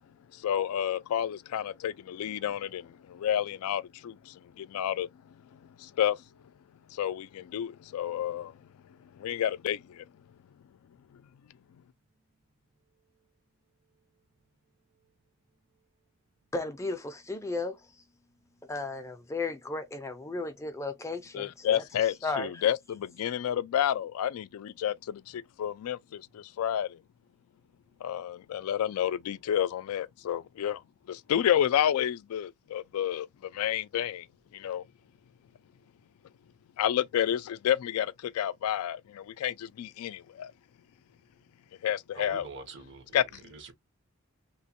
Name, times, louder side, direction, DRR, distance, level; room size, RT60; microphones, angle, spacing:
voice 1, 0.4-5.1 5.8-6.2 7.0-8.5 9.2-10.0 21.3-27.0 28.0-30.8 31.1-33.3 33.5-34.3 34.5-34.8 36.8-40.5 41.8-42.4 43.1-43.2, left 10 dB, 80° left, 0.3 m, -30 dB
voice 2, 16.5-17.8 18.7-21.8 22.2-22.6, left 3 dB, 15° left, 0.4 m, -35 dB
voice 3, 42.1-43.7, right 4 dB, 55° right, 0.8 m, -45 dB
3.0 x 2.1 x 2.8 m
head